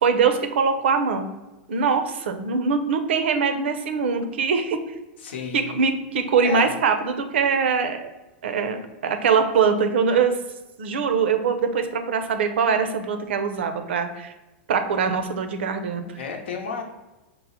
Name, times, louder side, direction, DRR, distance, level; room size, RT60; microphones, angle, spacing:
voice 1, 0.0-1.3 1.7-4.8 5.5-8.1 8.4-10.4 10.8-14.3 14.7-16.0, right 5 dB, 80° right, 8 dB, 0.6 m, -22 dB
voice 2, 5.2-5.8 6.4-6.8 16.2-16.8, left 6 dB, 80° left, 3 dB, 0.8 m, -31 dB
5.4 x 2.1 x 4.1 m, 1.1 s
hypercardioid pair, 120°, 6 cm